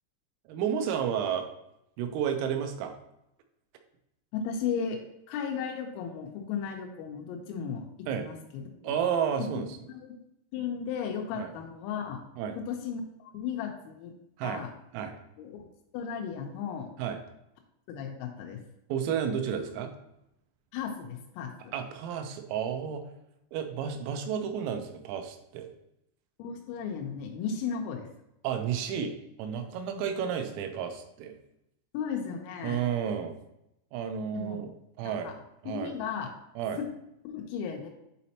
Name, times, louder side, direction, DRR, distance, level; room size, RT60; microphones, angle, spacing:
voice 1, 0.5-1.5 2.0-3.0 8.1-8.2 8.8-9.7 11.4-11.5 12.4-12.6 14.4-14.6 14.9-15.1 17.0-17.2 18.9-19.9 21.7-23.0 23.5-25.7 28.4-31.4 32.6-33.3 33.9-34.7 35.0-35.3 35.6-35.9 36.6-36.8, right 8 dB, 90° right, 6 dB, 3.4 m, -31 dB
voice 2, 4.3-7.8 8.1-8.9 9.4-10.2 10.5-12.2 12.6-14.1 14.4-14.7 15.4-15.6 15.9-16.9 17.9-18.6 20.7-21.7 26.4-28.1 29.9-30.1 31.9-32.8 34.3-34.7 35.0-35.4 35.7-36.3 36.8-36.9 37.2-37.9, left 7 dB, 85° left, 2 dB, 3.3 m, -35 dB
8.5 x 4.1 x 2.8 m, 0.83 s
omnidirectional pair, 5.9 m